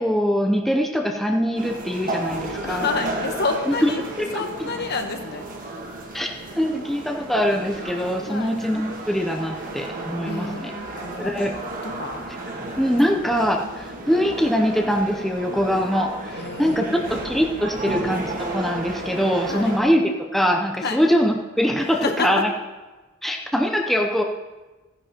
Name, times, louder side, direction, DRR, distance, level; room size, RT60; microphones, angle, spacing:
voice 1, 0.0-2.9 3.7-3.9 4.2-4.7 6.1-10.7 11.2-11.5 12.8-16.1 16.6-22.5 23.2-24.2, equal, ahead, 1 dB, 0.6 m, -23 dB
sound 1, 1.6-19.8, right 2 dB, 40° right, 1.4 m, -33 dB
voice 2, 2.3-4.0 4.3-5.5 8.3-8.5 10.2-11.5 11.9-12.3 16.4-17.2 19.5-19.8 20.8-21.0 22.0-22.4, left 4 dB, 50° left, 5 dB, 1.0 m, -29 dB
15.0 x 10.0 x 2.9 m, 1.2 s
head